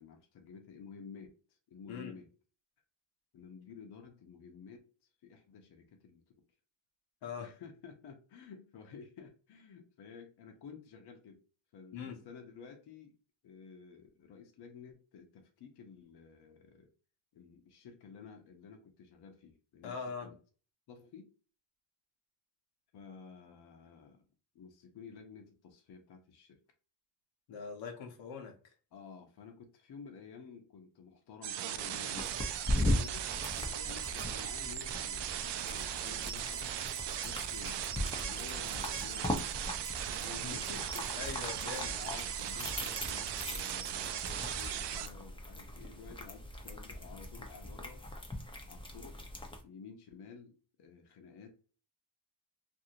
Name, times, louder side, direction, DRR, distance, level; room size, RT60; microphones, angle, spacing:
voice 1, 0.0-2.3 3.3-4.9 5.2-6.2 7.4-11.4 11.7-13.2 13.4-16.9 17.3-20.4 20.9-21.3 22.9-24.3 24.5-26.6 28.9-36.9 37.2-39.6 40.1-48.1 48.7-49.2 49.6-51.5, left 6 dB, 60° left, 0.8 m, -52 dB
voice 2, 19.8-20.3 27.5-28.7 40.4-40.6 41.2-41.9, left 5 dB, 85° left, 0.9 m, -42 dB
sound 1, 31.4-45.1, right 10 dB, 70° right, 0.5 m, -38 dB
sound 2, 32.2-49.6, left 1 dB, 10° left, 0.6 m, -39 dB
2.7 x 2.6 x 2.7 m
cardioid pair, 95°, 44 cm